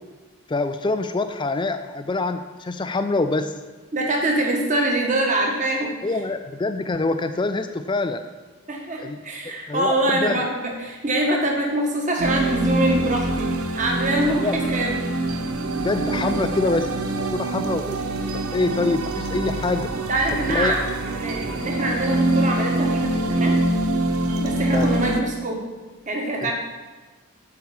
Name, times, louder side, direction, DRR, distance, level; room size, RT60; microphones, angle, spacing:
voice 1, 0.5-3.5 6.0-8.2 9.0-9.2 9.7-10.4 14.3-14.6 15.8-16.9 17.4-18.0 18.5-19.9 20.5-20.7 24.7-24.9 26.4-26.5, left 3 dB, 20° left, 9 dB, 0.3 m, -25 dB
voice 2, 3.9-6.2 8.7-15.0 19.9-20.8 21.0-23.6 24.4-25.7 26.1-26.5, right 1 dB, 35° right, 0 dB, 1.5 m, -24 dB
sound 1, 12.2-25.2, right 1 dB, 85° right, 0.8 m, -24 dB
8.5 x 4.7 x 7.0 m, 1.3 s
head